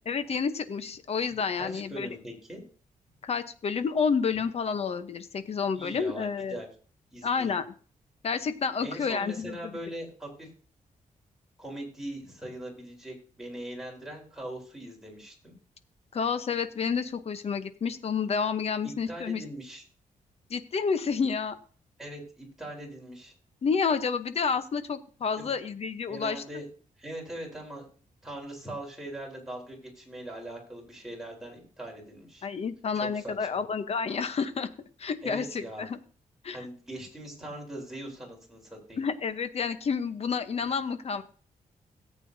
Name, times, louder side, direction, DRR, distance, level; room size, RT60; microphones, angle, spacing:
voice 1, 0.0-2.2 3.2-6.6 7.2-7.7 8.2-9.7 16.1-19.4 20.5-21.5 23.6-26.4 32.4-34.7 35.0-36.0 36.4-36.6 39.0-41.2, left 5 dB, 50° left, 11 dB, 0.9 m, -29 dB
voice 2, 1.6-2.6 5.7-6.7 7.1-7.6 8.8-10.5 11.6-15.5 19.1-19.8 22.0-23.3 25.4-25.6 26.1-26.6 27.0-27.9 28.2-32.5 32.9-33.6 35.2-35.9 36.5-39.0, right 1 dB, 5° right, -2 dB, 4.0 m, -41 dB
18.0 x 8.4 x 2.7 m, 0.42 s
wide cardioid pair, 130°, 14 cm